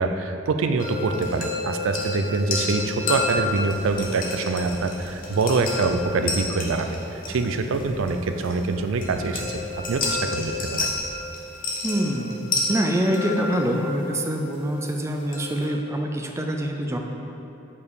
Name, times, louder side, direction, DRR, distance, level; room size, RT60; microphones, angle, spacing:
voice 1, 0.0-6.9 7.3-9.6 9.9-10.9, right 3 dB, 80° right, 6 dB, 0.4 m, -25 dB
sound 1, 0.8-15.7, left 3 dB, 45° left, 1.0 m, -31 dB
sound 2, 3.0-11.0, equal, 85° left, 1.3 m, -44 dB
voice 2, 11.8-17.0, right 1 dB, 15° right, 3 dB, 0.4 m, -25 dB
5.3 x 4.7 x 4.7 m, 3.0 s
head